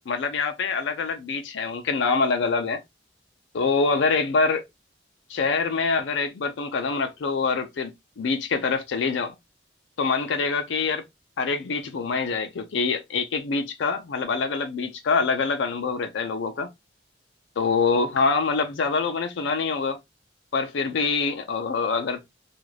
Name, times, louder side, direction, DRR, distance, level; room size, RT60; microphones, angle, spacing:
voice 1, 0.1-2.8 3.5-4.6 5.3-7.9 8.2-9.3 10.0-11.0 11.4-16.7 17.6-20.0 20.5-22.2, left 4 dB, 85° left, 0.4 m, -25 dB
2.4 x 2.3 x 3.2 m
head